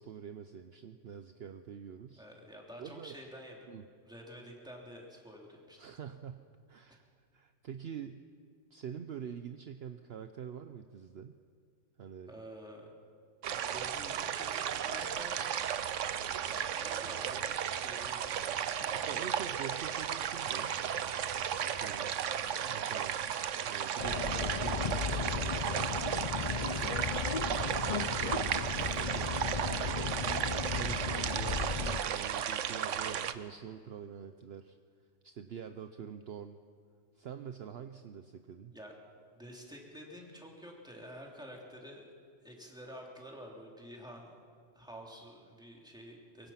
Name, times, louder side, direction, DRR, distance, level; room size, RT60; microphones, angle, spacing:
voice 1, 0.0-2.3 2.8-3.2 3.7-3.8 5.8-7.1 7.3-8.2 8.7-11.3 12.0-12.3 18.9-20.7 21.7-22.1 22.6-23.2 23.6-25.9 26.4-27.1 27.5-30.1 30.5-34.8 35.2-36.6 37.2-38.7, right 8 dB, 60° right, 8 dB, 0.9 m, -46 dB
voice 2, 2.2-3.7 4.0-5.8 6.9-7.0 12.3-12.9 13.7-15.7 16.5-19.1 29.4-29.7 38.7-38.9 39.3-42.0 42.4-44.4 44.7-46.5, equal, 5° right, -1 dB, 3.1 m, -49 dB
sound 1, 13.4-33.3, right 9 dB, 85° right, 1.1 m, -34 dB
Subway metro underground, 24.0-32.0, left 6 dB, 45° left, 0.5 m, -36 dB
23.5 x 22.5 x 5.8 m, 2.1 s
omnidirectional pair, 1.2 m